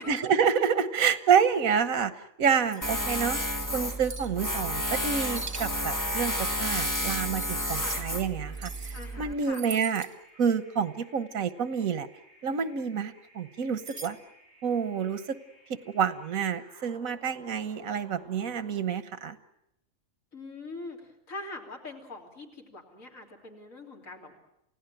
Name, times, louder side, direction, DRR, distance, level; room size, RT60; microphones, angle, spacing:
voice 1, 0.1-2.1 2.4-3.4 3.7-8.7 9.2-10.1 10.4-12.1 12.4-14.2 14.6-15.4 15.7-19.4, right 7 dB, 85° right, 13 dB, 1.6 m, -28 dB
sound 1, 2.7-3.5 4.0-4.3 5.3-5.7 6.4-6.7 7.4-7.8 8.5-9.1 9.5-10.1 13.8-14.1, right 4 dB, 55° right, 1.7 m, -42 dB
Tools, 2.8-9.3, equal, 15° left, 1.4 m, -31 dB
sound 2, 6.5-18.8, equal, 15° right, 8.1 m, -58 dB
voice 2, 8.9-9.6 20.3-21.0 21.3-24.3, left 2 dB, 75° left, 1 dB, 3.8 m, -43 dB
29.0 x 17.0 x 9.0 m, 0.83 s
omnidirectional pair, 1.4 m